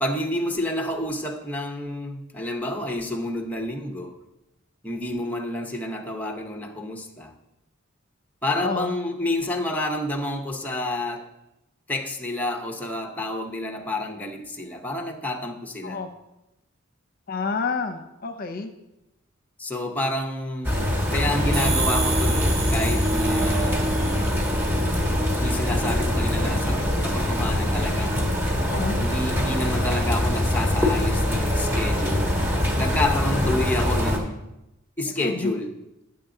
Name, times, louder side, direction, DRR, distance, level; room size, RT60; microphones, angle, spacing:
voice 1, 0.0-4.2 4.8-7.3 8.4-11.3 11.9-16.0 19.6-20.7 21.1-23.9 25.3-28.5 29.0-32.3 32.8-34.4 35.0-35.7, left 1 dB, 10° left, 2 dB, 0.7 m, -29 dB
voice 2, 8.5-8.9 15.8-16.1 17.3-18.7 28.6-29.0 33.3-33.5 35.2-35.5, left 4 dB, 45° left, 6 dB, 0.7 m, -29 dB
sound 1, 20.6-34.2, left 1 dB, 10° right, 1.2 m, -23 dB
sound 2, 21.5-25.1, right 5 dB, 50° right, 1.6 m, -32 dB
10.0 x 6.9 x 3.8 m, 0.93 s
head